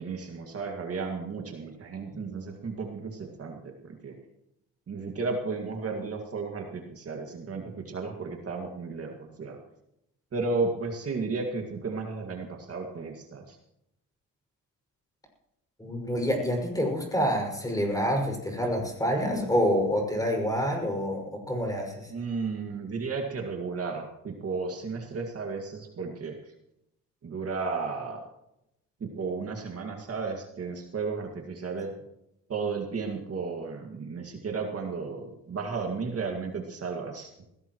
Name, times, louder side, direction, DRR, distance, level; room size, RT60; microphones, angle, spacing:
voice 1, 0.0-4.2 4.9-9.6 10.3-13.6 22.1-26.3 27.2-28.2 29.0-31.9 32.5-37.5, right 4 dB, 45° right, 2 dB, 2.1 m, -34 dB
voice 2, 15.8-22.1, equal, 10° left, 1 dB, 6.0 m, -27 dB
20.0 x 17.0 x 3.1 m, 0.83 s
cardioid pair, 120°, 33 cm